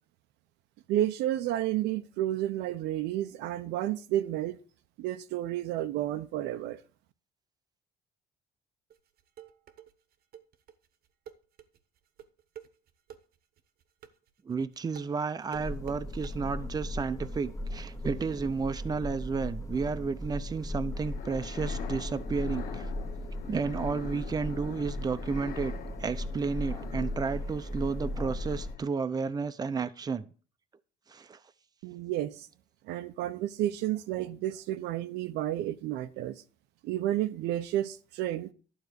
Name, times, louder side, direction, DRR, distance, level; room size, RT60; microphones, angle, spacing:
voice 1, 0.9-4.6 5.0-6.8 31.8-32.5 32.9-36.4 36.8-38.5, right 13 dB, 85° right, 0.7 m, -31 dB
sound 1, 8.9-16.3, right 10 dB, 65° right, 1.1 m, -49 dB
voice 2, 14.5-22.9 23.5-25.7 26.0-30.3 31.1-31.4, right 5 dB, 25° right, 0.7 m, -32 dB
sound 2, 15.5-28.8, left 1 dB, 20° left, 1.0 m, -37 dB
sound 3, 21.0-29.0, left 11 dB, 60° left, 0.7 m, -45 dB
12.0 x 4.0 x 8.0 m
cardioid pair, 110°, 17 cm